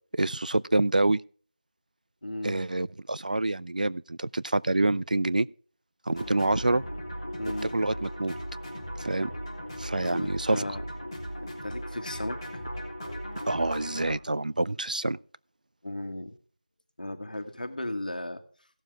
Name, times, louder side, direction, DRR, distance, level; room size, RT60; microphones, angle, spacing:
voice 1, 0.1-1.2 2.4-5.5 6.1-6.8 7.7-8.4 9.0-9.3 9.8-10.6 13.5-15.2, right 2 dB, 65° right, 0.4 m, -27 dB
voice 2, 2.2-2.6 7.4-7.7 10.0-10.8 11.4-12.7 15.8-16.3 17.0-18.4, left 1 dB, 70° left, 1.8 m, -36 dB
sound 1, 6.1-14.1, equal, 25° left, 3.0 m, -38 dB
17.0 x 7.3 x 3.5 m
figure-of-eight pair, 180°, 5 cm